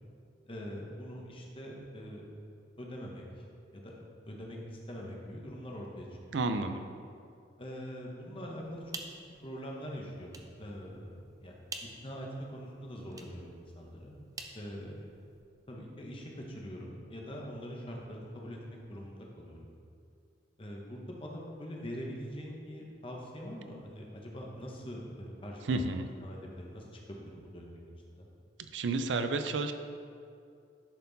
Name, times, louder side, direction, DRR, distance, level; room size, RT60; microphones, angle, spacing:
voice 1, 0.4-2.2 2.8-3.4 3.7-3.9 4.3-6.4 7.6-8.9 9.4-14.2 14.5-15.0 15.7-19.7 20.6-25.6 26.2-28.3, equal, 30° left, -1 dB, 1.0 m, -43 dB
voice 2, 6.3-6.9 25.6-26.1 28.7-29.7, right 3 dB, 85° right, 8 dB, 0.5 m, -31 dB
sound 1, 8.6-15.4, right 3 dB, 20° right, 0.5 m, -49 dB
10.5 x 4.3 x 4.0 m, 2.4 s
head